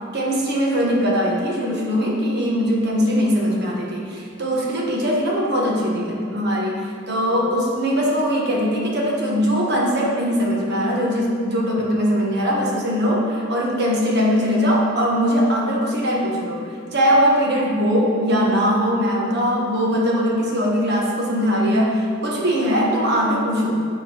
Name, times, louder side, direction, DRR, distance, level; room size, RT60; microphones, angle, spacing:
voice 1, 0.1-16.7 16.9-23.8, equal, 55° right, -2 dB, 1.3 m, -21 dB
9.3 x 3.9 x 5.4 m, 2.3 s
head